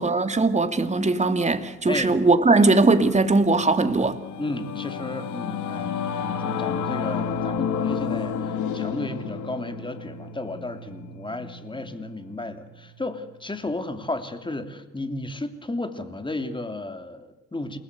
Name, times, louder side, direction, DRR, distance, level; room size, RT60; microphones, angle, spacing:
voice 1, 0.0-4.2, right 3 dB, 25° right, 2.5 m, -20 dB
Singing / Musical instrument, 3.6-13.3, left 6 dB, 75° left, 2.6 m, -31 dB
voice 2, 4.4-17.8, left 2 dB, 15° left, 3.0 m, -33 dB
28.0 x 20.5 x 8.3 m
cardioid pair, 90°, 30 cm